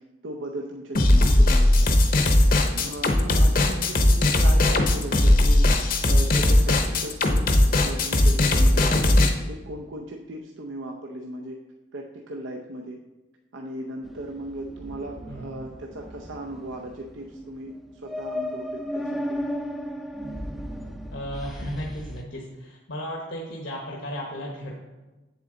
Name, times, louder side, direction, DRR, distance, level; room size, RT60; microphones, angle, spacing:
voice 1, 0.0-1.9 2.7-5.7 6.1-11.6 11.9-13.0 13.5-19.4, right 1 dB, 80° right, 1 dB, 0.7 m, -37 dB
sound 1, 0.9-9.3, left 1 dB, 45° left, 0.8 m, -18 dB
sound 2, 14.0-22.2, equal, ahead, 0.4 m, -35 dB
voice 2, 21.1-24.7, equal, 75° left, -2 dB, 1.1 m, -35 dB
8.1 x 7.3 x 3.8 m, 1.1 s
head